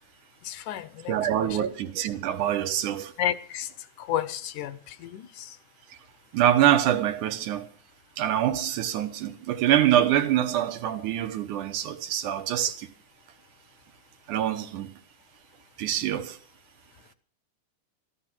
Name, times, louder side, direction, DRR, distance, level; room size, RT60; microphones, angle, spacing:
voice 1, 0.4-1.6 3.2-3.7 4.0-5.6, left 11 dB, 80° left, 2.3 m, -32 dB
voice 2, 1.1-3.1 6.3-7.7 8.2-12.9 14.3-14.9 15.8-16.4, right 11 dB, 75° right, 2.6 m, -25 dB
14.0 x 13.5 x 5.9 m
omnidirectional pair, 3.6 m